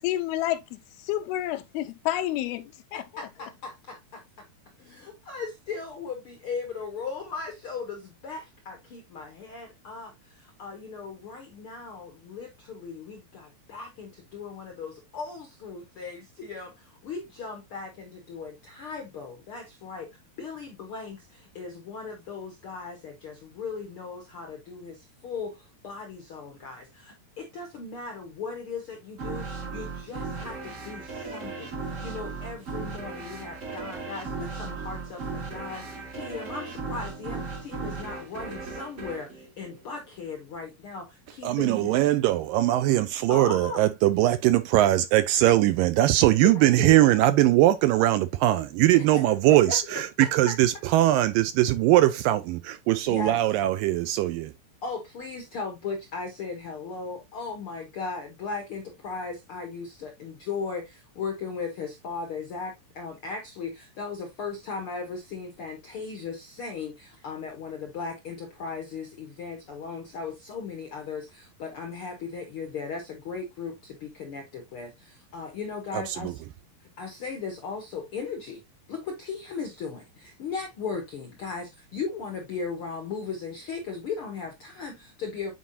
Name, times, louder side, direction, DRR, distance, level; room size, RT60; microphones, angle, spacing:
voice 1, 0.0-3.3, left 14 dB, 85° left, 2.7 m, -30 dB
voice 2, 2.9-4.0 4.9-10.1 10.6-16.7 17.0-20.1 20.4-21.2 21.5-24.9 25.2-25.5 25.8-26.8 27.4-29.4 29.7-30.6 30.8-31.1 31.3-31.7 32.0-35.2 35.5-35.8 36.1-39.3 39.6-41.0 41.3-41.9 43.3-43.9 46.4-47.0 48.9-49.8 50.2-50.6 53.1-53.4 54.8-60.8 61.2-73.7 74.0-74.9 75.3-76.3 77.0-78.6 78.9-80.0 80.4-85.5, left 5 dB, 70° left, 1.3 m, -37 dB
sound 1, 29.2-40.4, right 4 dB, 50° right, 0.9 m, -36 dB
voice 3, 41.4-54.5 75.9-76.3, right 14 dB, 80° right, 2.0 m, -21 dB
9.2 x 4.7 x 2.7 m
omnidirectional pair, 4.3 m